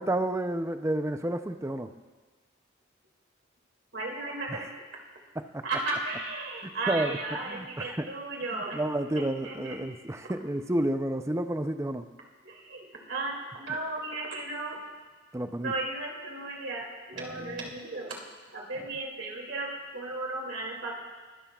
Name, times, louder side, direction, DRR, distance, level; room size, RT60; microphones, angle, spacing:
voice 1, 0.0-1.9 4.5-4.6 5.4-5.6 6.6-7.1 7.5-8.1 8.5-12.1 15.3-15.7 17.4-17.5, right 1 dB, 15° right, 8 dB, 0.5 m, -30 dB
voice 2, 3.9-4.7 5.6-8.8 9.1-9.8 10.2-10.3 12.4-14.8 15.6-18.2 18.5-20.9, right 2 dB, 65° right, -1 dB, 2.6 m, -35 dB
22.5 x 13.0 x 2.4 m, 1.3 s
head